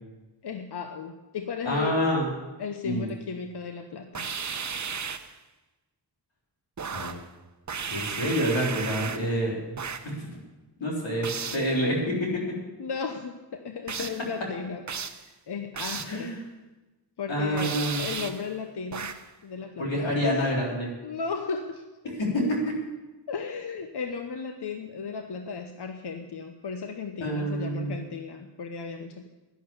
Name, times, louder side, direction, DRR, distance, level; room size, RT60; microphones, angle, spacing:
voice 1, 0.4-2.0 2.6-4.3 11.5-11.6 12.8-14.8 15.1-16.4 17.2-19.2 19.4-20.2 21.0-21.8 23.3-29.3, left 5 dB, 60° left, 6 dB, 1.0 m, -35 dB
voice 2, 1.6-2.3 2.8-3.1 6.9-7.2 7.9-9.6 10.0-10.4 10.8-11.3 11.5-12.4 16.0-16.4 17.3-18.0 19.8-20.9 22.2-22.8 27.2-28.0, equal, 90° left, -3 dB, 3.9 m, -27 dB
sound 1, 4.1-5.4 6.8-7.3 7.7-9.4 9.8-10.2 11.2-11.7 13.9-14.3 14.9-15.3 15.8-16.2 17.6-18.5 18.9-19.3, right 6 dB, 40° right, 0.8 m, -34 dB
11.0 x 11.0 x 7.0 m, 1.1 s
cardioid pair, 60°, 44 cm